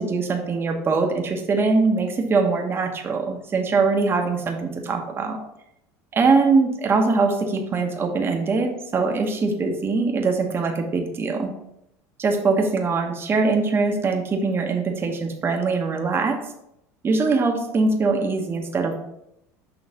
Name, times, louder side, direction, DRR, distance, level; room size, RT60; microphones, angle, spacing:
voice 1, 0.0-5.4 6.1-11.5 12.2-16.4 17.0-18.9, right 4 dB, 30° right, 3 dB, 1.0 m, -22 dB
6.2 x 3.2 x 5.2 m, 0.81 s
supercardioid pair, 100°, 8 cm